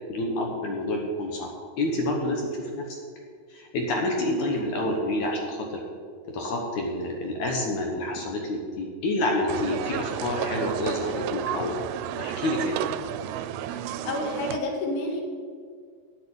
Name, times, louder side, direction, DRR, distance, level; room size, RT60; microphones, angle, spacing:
voice 1, 0.1-1.5 1.8-3.0 3.5-5.7 6.3-11.8 12.2-12.8, left 1 dB, 65° left, 1 dB, 2.2 m, -28 dB
sound 1, 9.5-14.6, right 11 dB, 90° right, 2.4 m, -32 dB
voice 2, 13.7-15.2, left 2 dB, 90° left, 1 dB, 3.4 m, -31 dB
8.1 x 7.5 x 8.8 m, 2.1 s
omnidirectional pair, 4.2 m